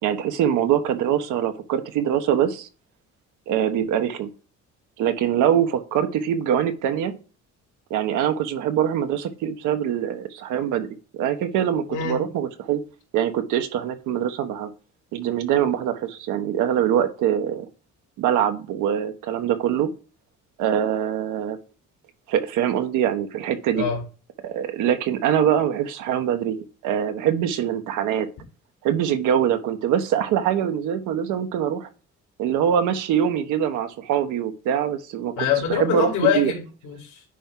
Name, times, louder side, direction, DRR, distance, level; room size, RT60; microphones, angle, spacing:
voice 1, 0.0-2.7 3.5-4.3 5.0-7.1 7.9-10.9 11.1-12.8 13.1-14.7 15.1-17.7 18.2-19.9 20.6-21.6 22.3-23.8 24.4-28.3 28.8-31.9 32.4-35.3 35.7-36.5, right 9 dB, 90° right, 7 dB, 1.2 m, -23 dB
voice 2, 11.9-12.2 23.8-24.0 35.4-37.2, left 7 dB, 80° left, -3 dB, 3.0 m, -24 dB
10.0 x 4.7 x 3.9 m, 0.35 s
cardioid pair, 90°, 30 cm